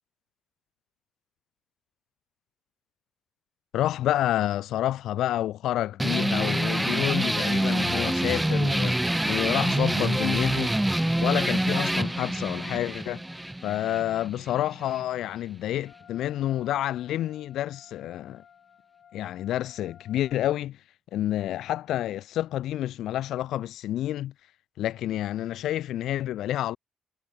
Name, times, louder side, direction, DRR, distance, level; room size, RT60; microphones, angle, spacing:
voice 1, 3.7-10.7 11.2-13.2 13.6-18.4 19.1-20.8 21.1-24.3 24.8-26.8, left 13 dB, 80° left, 0.6 m, -29 dB
sound 1, 6.0-15.0, right 1 dB, 5° right, 0.5 m, -26 dB
Wind instrument woodwind instrument, 15.8-20.4, left 8 dB, 60° left, 5.5 m, -55 dB
cardioid pair, 90°, 0 cm